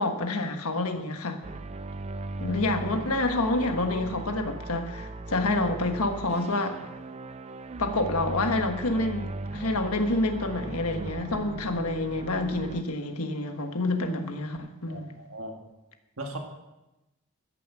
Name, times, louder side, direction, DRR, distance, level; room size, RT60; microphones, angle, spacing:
voice 1, 0.0-1.4 2.4-6.8 7.8-15.1, left 2 dB, 80° left, 6 dB, 1.3 m, -28 dB
sound 1, 1.4-12.8, right 2 dB, 30° right, 0.4 m, -38 dB
voice 2, 14.9-15.6 16.2-16.4, right 1 dB, 65° right, 2 dB, 1.7 m, -38 dB
14.5 x 7.1 x 6.1 m, 1.0 s
head